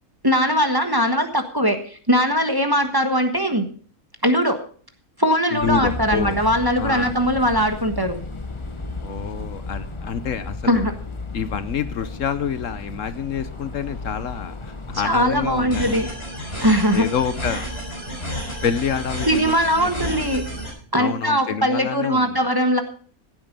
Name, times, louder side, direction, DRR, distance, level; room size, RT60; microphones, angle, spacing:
voice 1, 0.2-3.7 4.2-4.6 5.2-8.1 10.6-10.9 15.0-16.1 16.6-17.1 19.3-20.4 20.9-22.8, equal, 15° right, 6 dB, 1.3 m, -20 dB
voice 2, 5.5-6.4 6.8-7.1 9.0-10.9 11.3-16.1 16.9-17.6 18.6-20.3 21.0-22.5, left 7 dB, 65° left, 13 dB, 1.1 m, -28 dB
sound 1, 5.6-16.1, left 3 dB, 25° left, 1.1 m, -34 dB
sound 2, 15.7-20.7, equal, 45° left, 5.7 m, -31 dB
16.0 x 8.9 x 5.3 m, 0.43 s
omnidirectional pair, 1.5 m